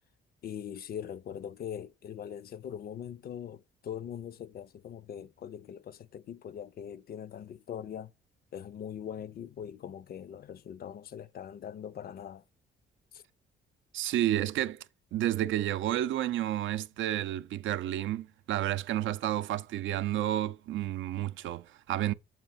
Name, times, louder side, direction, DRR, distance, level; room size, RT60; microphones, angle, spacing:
voice 1, 0.4-8.1 8.5-12.4 13.1-13.2, left 9 dB, 50° left, 0.5 m, -41 dB
voice 2, 13.9-14.8 15.1-22.1, right 13 dB, 75° right, 0.4 m, -31 dB
7.5 x 2.7 x 5.5 m
cardioid pair, 90°, 20 cm